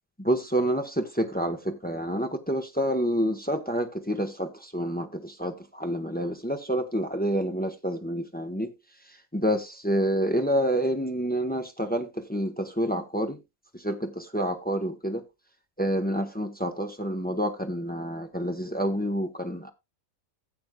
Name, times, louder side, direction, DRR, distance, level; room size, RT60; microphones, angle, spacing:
voice 1, 0.2-8.7 9.3-13.4 13.8-15.2 15.8-19.7, equal, 10° left, 0.7 m, -28 dB
15.5 x 7.9 x 2.2 m
omnidirectional pair, 1.5 m